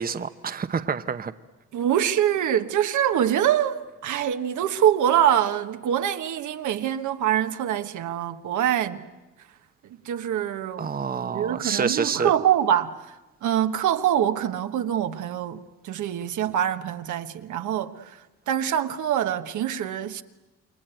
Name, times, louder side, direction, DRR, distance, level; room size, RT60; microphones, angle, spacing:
voice 1, 0.0-1.3 10.8-12.3, right 6 dB, 30° right, 0.9 m, -27 dB
voice 2, 1.7-9.0 9.8-10.9 11.2-13.0 13.4-18.2 18.5-20.2, right 10 dB, 75° right, 1.4 m, -24 dB
28.5 x 22.5 x 9.1 m
cardioid pair, 90°, 30 cm